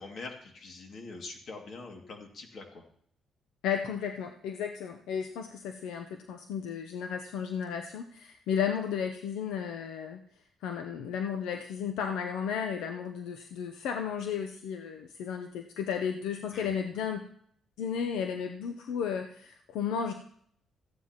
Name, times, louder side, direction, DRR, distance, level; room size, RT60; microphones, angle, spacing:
voice 1, 0.0-2.8 16.5-16.7, left 3 dB, 60° left, 2 dB, 2.3 m, -44 dB
voice 2, 3.6-10.2 10.6-17.2 17.8-20.1, left 7 dB, 90° left, 5 dB, 0.7 m, -33 dB
14.5 x 9.5 x 3.0 m, 0.64 s
cardioid pair, 90°, 0 cm